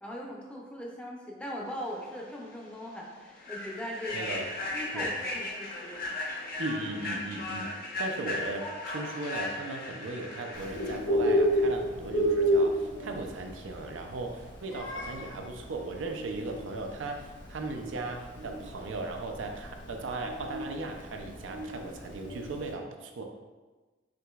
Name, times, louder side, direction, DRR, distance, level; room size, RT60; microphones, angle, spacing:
voice 1, 0.0-4.3 4.7-6.1, equal, 5° left, -2 dB, 0.5 m, -40 dB
Human voice / Train, 2.1-2.2 2.7-2.9 3.4-11.0, left 2 dB, 50° left, 0.8 m, -36 dB
voice 2, 4.1-4.5 4.9-5.1 6.6-7.7 8.0-23.2, right 2 dB, 85° right, 3 dB, 0.5 m, -37 dB
Bird, 10.5-22.7, equal, 70° left, 1.3 m, -31 dB
5.9 x 2.9 x 2.3 m, 1.3 s
head